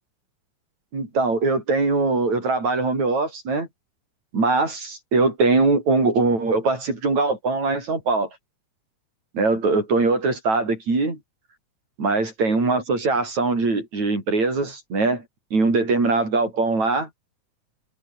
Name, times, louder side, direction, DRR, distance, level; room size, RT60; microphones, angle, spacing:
voice 1, 0.9-3.7 4.3-8.3 9.3-11.2 12.0-15.2 15.5-17.1, right 3 dB, 65° right, 8.9 m, -21 dB
omnidirectional pair, 3.5 m